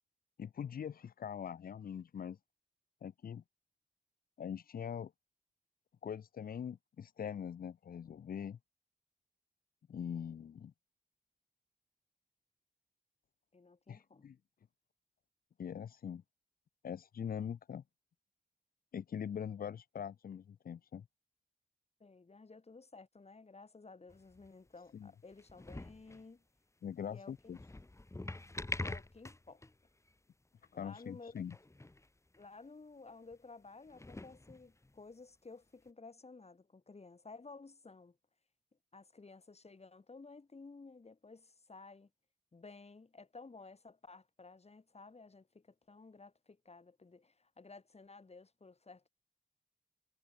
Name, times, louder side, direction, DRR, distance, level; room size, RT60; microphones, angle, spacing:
voice 1, 0.4-2.4 3.0-3.4 4.4-5.1 6.0-8.6 9.9-10.7 13.9-14.4 15.6-16.2 16.8-17.8 18.9-21.0 24.9-25.1 26.8-27.6 30.7-31.6, left 8 dB, 85° left, 0.5 m, -42 dB
voice 2, 13.5-14.3 22.0-26.4 27.1-27.6 28.8-29.6 30.7-31.4 32.4-38.2 38.9-42.1 42.5-49.1, left 3 dB, 45° left, 6.1 m, -54 dB
sound 1, 24.1-24.7 25.3-26.2 27.4-29.8 30.1-30.2 30.6-30.7 30.9-31.1 31.4-32.1 32.3-32.5 33.3-33.4 33.9-35.0 35.9-36.0, left 2 dB, 20° left, 1.1 m, -45 dB
wide cardioid pair, 110°, 15 cm